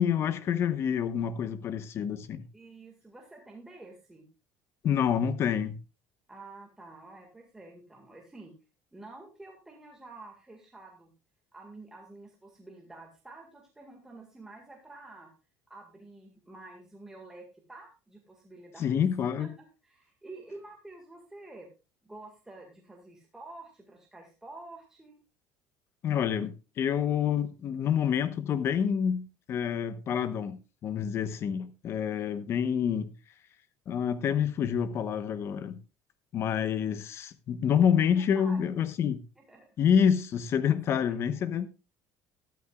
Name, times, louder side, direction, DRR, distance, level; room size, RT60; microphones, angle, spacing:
voice 1, 0.0-2.4 4.8-5.8 18.8-19.5 26.0-33.1 33.9-35.8 36.3-39.2 39.8-41.7, left 8 dB, 40° left, 1.0 m, -27 dB
voice 2, 2.5-4.3 6.3-8.6 8.9-11.1 11.5-15.3 15.7-18.9 19.4-19.5 19.8-21.7 22.0-25.2 38.1-38.6 39.5-39.7 40.7-41.2, right 2 dB, 10° right, 1.9 m, -49 dB
13.0 x 13.0 x 2.4 m
cardioid pair, 140°, 7 cm